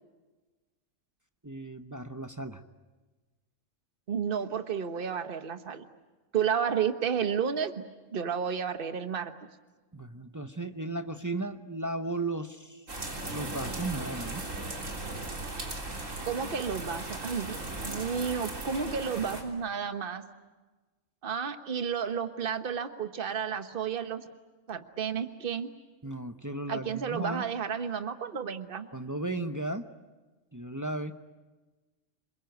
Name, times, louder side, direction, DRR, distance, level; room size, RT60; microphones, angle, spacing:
voice 1, 1.4-2.6 9.9-12.8 13.3-14.5 26.0-27.4 28.9-29.9 30.5-31.1, right 2 dB, 15° right, 7 dB, 0.8 m, -35 dB
voice 2, 4.1-5.8 6.3-7.7 8.1-9.3 16.2-20.2 21.2-24.2 24.7-25.7 26.7-28.9, right 7 dB, 45° right, 9 dB, 1.4 m, -32 dB
sound 1, 12.9-19.4, right 2 dB, 80° right, 3.9 m, -37 dB
28.0 x 22.0 x 9.4 m, 1.3 s
omnidirectional pair, 1.3 m